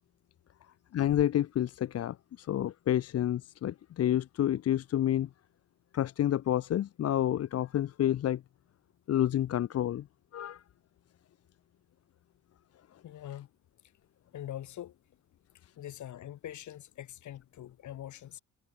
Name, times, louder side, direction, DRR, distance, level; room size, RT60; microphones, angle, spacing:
voice 1, 0.9-5.3 5.9-8.4 9.1-10.1 10.3-10.6, left 11 dB, 55° left, 0.7 m, -29 dB
voice 2, 13.0-13.5 14.3-14.9 15.8-18.4, left 12 dB, 75° left, 4.4 m, -43 dB
cardioid pair, 90°, 30 cm